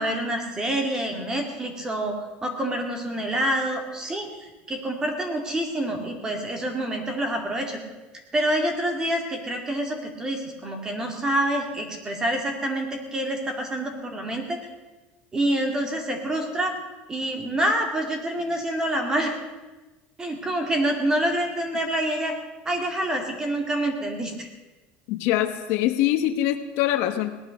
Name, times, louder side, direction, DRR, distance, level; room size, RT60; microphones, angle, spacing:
voice 1, 0.0-7.8 8.3-14.6 15.3-16.7 17.1-19.3 20.2-22.3 22.7-24.5, right 1 dB, 15° right, 3 dB, 2.3 m, -27 dB
voice 2, 25.1-27.4, left 13 dB, 60° left, 8 dB, 1.1 m, -24 dB
18.0 x 11.0 x 6.5 m, 1.1 s
cardioid pair, 170°, 4 cm